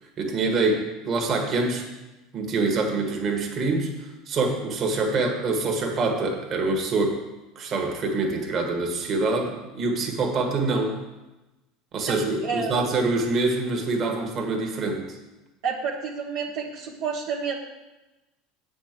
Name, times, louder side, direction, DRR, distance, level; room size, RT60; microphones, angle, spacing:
voice 1, 0.2-1.9 2.3-7.2 7.6-11.0 11.9-15.2, right 3 dB, 40° right, 2 dB, 1.7 m, -25 dB
voice 2, 12.0-12.7 15.6-17.5, right 5 dB, 70° right, -3 dB, 1.2 m, -30 dB
7.9 x 5.3 x 6.7 m, 1.1 s
supercardioid pair, 110°, 0 cm